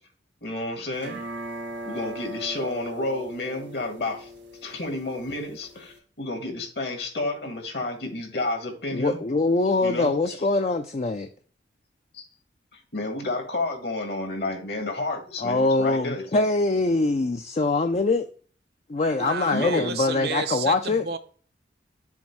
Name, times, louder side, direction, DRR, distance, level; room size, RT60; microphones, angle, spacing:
voice 1, 0.4-1.2 1.8-4.3 4.6-9.2 9.8-10.4 12.1-12.2 12.9-16.2 19.5-19.9, left 2 dB, 60° left, 1.7 m, -30 dB
sound 1, 1.0-6.0, right 1 dB, 90° right, 2.0 m, -39 dB
voice 2, 8.9-11.3 15.4-18.3 18.9-21.0, left 3 dB, 35° left, 0.4 m, -23 dB
voice 3, 19.2-21.2, right 5 dB, 55° right, 0.6 m, -31 dB
7.2 x 2.7 x 5.8 m
head